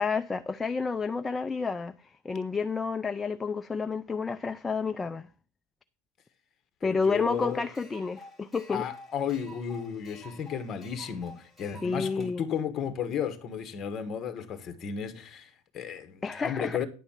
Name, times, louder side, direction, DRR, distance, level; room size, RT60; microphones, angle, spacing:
voice 1, 0.0-5.3 6.8-8.8 11.8-12.4 16.2-16.8, left 4 dB, 15° left, 0.3 m, -30 dB
voice 2, 6.8-7.7 8.7-16.9, left 8 dB, 30° left, 1.3 m, -34 dB
sound 1, 7.3-12.3, left 1 dB, 5° right, 2.2 m, -50 dB
10.0 x 4.0 x 7.2 m
supercardioid pair, 145°, 0 cm